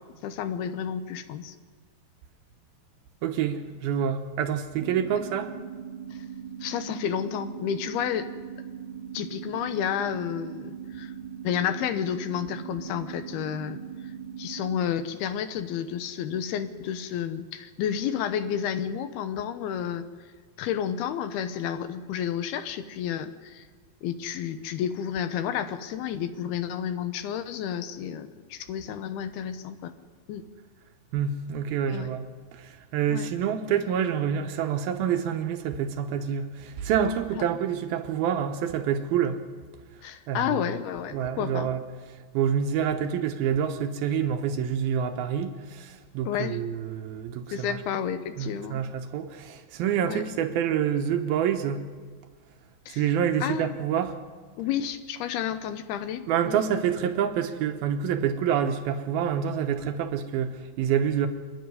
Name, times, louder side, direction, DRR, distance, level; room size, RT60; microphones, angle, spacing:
voice 1, 0.2-1.6 6.1-6.2 6.6-8.3 9.1-11.1 11.4-13.8 14.4-20.1 20.6-23.7 24.0-29.9 30.3-30.4 31.9-32.1 33.1-33.3 40.0-41.7 46.2-46.6 47.5-48.8 50.0-50.2 52.9-53.1 53.4-53.8 54.6-56.6, left 9 dB, 75° left, 10 dB, 2.8 m, -31 dB
voice 2, 3.2-5.6 31.1-32.2 32.5-39.4 40.3-40.6 41.1-41.8 42.3-47.8 48.4-51.8 52.9-54.2 56.3-61.3, right 8 dB, 75° right, 6 dB, 2.6 m, -27 dB
sound 1, 4.8-14.8, right 8 dB, 90° right, 3.0 m, -40 dB
27.5 x 10.5 x 9.7 m, 1.5 s
omnidirectional pair, 4.7 m